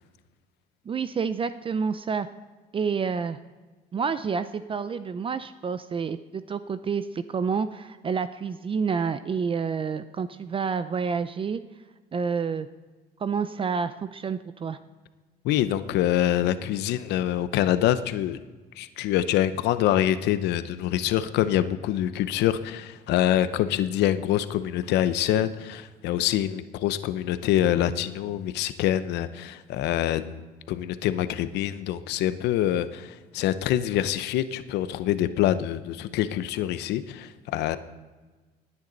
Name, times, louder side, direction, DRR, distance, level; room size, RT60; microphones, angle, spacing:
voice 1, 0.9-2.3 2.7-3.4 3.9-11.6 12.1-12.7 13.2-14.8, right 5 dB, 30° right, 12 dB, 0.5 m, -29 dB
voice 2, 15.4-18.4 18.8-37.8, left 12 dB, 85° left, 13 dB, 0.8 m, -25 dB
17.5 x 9.7 x 4.0 m, 1.3 s
cardioid pair, 110°, 17 cm